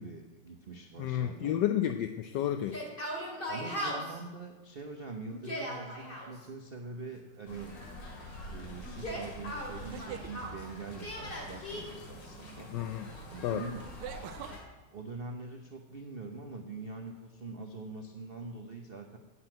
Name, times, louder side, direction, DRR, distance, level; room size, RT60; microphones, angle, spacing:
voice 1, 0.0-1.6 3.5-7.8 8.5-12.8 13.3-13.9 14.9-19.2, right 3 dB, 60° right, 4 dB, 0.6 m, -44 dB
voice 2, 1.0-2.8 12.7-13.1 13.4-13.6, left 11 dB, 75° left, 7 dB, 1.0 m, -31 dB
Yell, 2.7-4.2 5.3-6.3 8.8-10.6 11.0-11.8, equal, 25° left, 2.4 m, -38 dB
sound 1, 7.1-7.6 9.7-10.3 12.6-12.7 14.0-14.6, right 10 dB, 85° right, 1.6 m, -43 dB
sound 2, 7.5-14.6, left 1 dB, 55° left, 2.9 m, -46 dB
8.1 x 7.7 x 8.7 m, 1.2 s
omnidirectional pair, 2.3 m